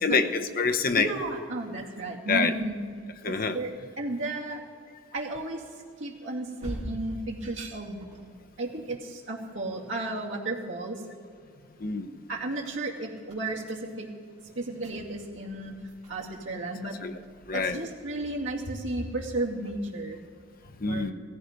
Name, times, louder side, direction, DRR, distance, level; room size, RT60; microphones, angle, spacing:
voice 1, 0.0-1.1 2.3-2.5 3.2-3.6 11.8-12.1 17.0-17.1 17.5-17.8 20.8-21.1, left 4 dB, 45° left, 7 dB, 0.8 m, -26 dB
voice 2, 1.0-4.6 5.1-5.6 6.0-8.0 8.6-11.0 12.3-14.1 14.6-15.8 16.1-17.0 17.5-20.2 20.9-21.1, right 2 dB, 70° right, -2 dB, 2.4 m, -33 dB
sound 1, 3.7-10.3 10.7-20.5, equal, 35° right, 4.8 m, -48 dB
17.5 x 15.0 x 5.2 m, 2.3 s
head